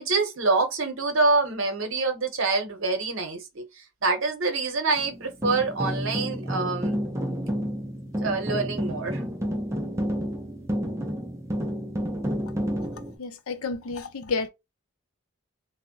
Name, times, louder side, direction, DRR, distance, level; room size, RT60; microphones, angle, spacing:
voice 1, 0.0-7.0 8.2-9.2, right 3 dB, 70° right, 0.8 m, -26 dB
sound 1, 5.0-13.2, equal, 15° right, 0.3 m, -30 dB
voice 2, 13.2-14.5, left 4 dB, 90° left, 0.5 m, -30 dB
2.1 x 2.0 x 3.6 m
head